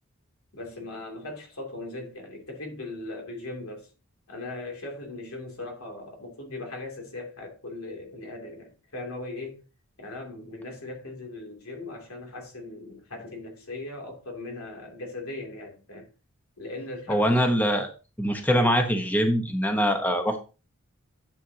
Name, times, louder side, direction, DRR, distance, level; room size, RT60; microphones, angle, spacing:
voice 1, 0.5-3.9 4.3-9.6 10.0-16.1 16.6-17.3, left 2 dB, 85° left, 2.8 m, -39 dB
voice 2, 17.1-17.9 18.2-20.4, equal, 10° left, 1.0 m, -23 dB
10.5 x 7.1 x 2.8 m
head